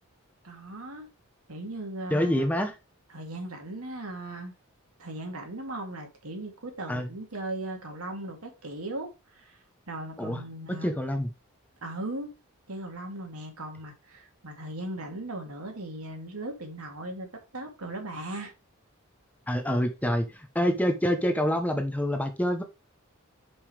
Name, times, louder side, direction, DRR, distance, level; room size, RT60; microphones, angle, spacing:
voice 1, 0.4-1.1 1.5-2.5 3.1-4.5 5.0-9.6 9.9-10.9 11.8-12.3 12.7-17.3 17.5-18.5, right 1 dB, 85° right, 2.2 m, -38 dB
voice 2, 2.1-2.7 6.9-7.1 10.2-10.4 10.7-11.3 19.5-22.6, equal, 5° left, 0.8 m, -26 dB
5.4 x 5.4 x 4.8 m
head